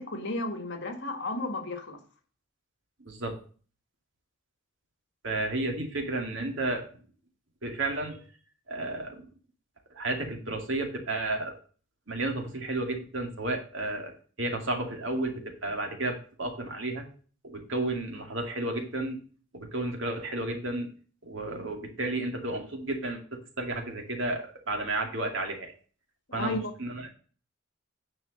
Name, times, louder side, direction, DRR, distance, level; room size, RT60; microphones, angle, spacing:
voice 1, 0.0-2.0 26.3-26.7, left 2 dB, 55° left, 6 dB, 1.9 m, -33 dB
voice 2, 3.0-3.4 5.2-6.8 7.6-8.2 8.7-9.3 9.9-11.5 12.1-14.1 14.4-17.0 17.4-19.2 19.5-20.9 21.2-25.7 26.3-27.1, right 2 dB, 65° right, 3 dB, 2.4 m, -32 dB
9.8 x 5.4 x 6.6 m, 0.41 s
head